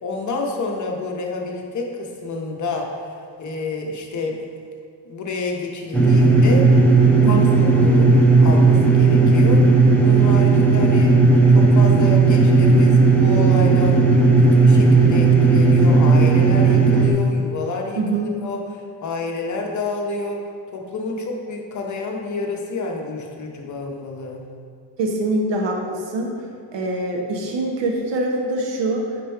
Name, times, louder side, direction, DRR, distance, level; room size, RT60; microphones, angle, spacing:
voice 1, 0.0-2.9 3.4-4.4 5.1-6.8 7.2-9.7 10.0-11.1 11.5-14.0 14.4-20.4 20.7-24.5, left 3 dB, 40° left, 1 dB, 0.8 m, -29 dB
sound 1, 5.9-17.1, right 3 dB, 5° left, 0.6 m, -14 dB
voice 2, 7.2-7.5 18.0-18.3 25.0-26.3 26.7-29.2, right 2 dB, 75° right, 1 dB, 1.0 m, -24 dB
5.1 x 4.4 x 4.3 m, 2.3 s
cardioid pair, 135°, 44 cm